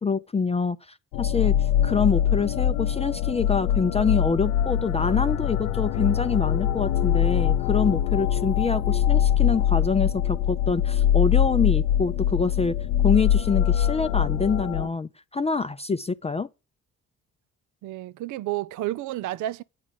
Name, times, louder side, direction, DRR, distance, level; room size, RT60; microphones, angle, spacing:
voice 1, 0.0-12.7 13.0-16.5, left 5 dB, 20° left, 0.5 m, -26 dB
sound 1, 1.1-14.9, left 10 dB, 85° left, 0.5 m, -23 dB
voice 2, 17.8-19.6, right 14 dB, 70° right, 0.5 m, -31 dB
9.6 x 4.9 x 7.3 m
supercardioid pair, 65°, 32 cm